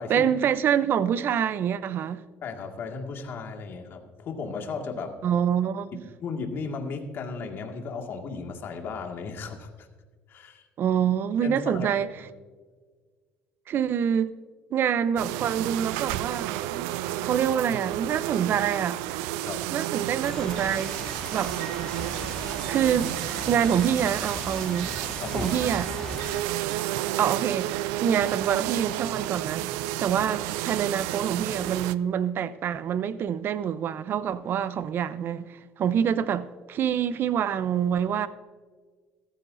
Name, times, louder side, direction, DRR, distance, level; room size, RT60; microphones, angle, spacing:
voice 1, 0.1-2.2 5.2-5.9 10.8-12.1 13.7-14.3 14.7-16.9 17.2-19.0 19.7-21.0 21.3-21.5 22.7-23.2 23.5-25.0 25.3-25.9 27.2-29.7 30.0-38.3, right 8 dB, 50° right, 0.7 m, -26 dB
voice 2, 2.4-5.2 6.2-9.9 10.3-10.6 11.4-11.9 12.2-12.3 19.4-19.6 25.2-25.5, left 4 dB, 55° left, 2.1 m, -35 dB
sound 1, 15.2-31.9, right 15 dB, 90° right, 0.4 m, -31 dB
sound 2, 20.2-26.4, left 1 dB, 10° left, 2.7 m, -38 dB
15.0 x 14.5 x 2.7 m
cardioid pair, 100°, 5 cm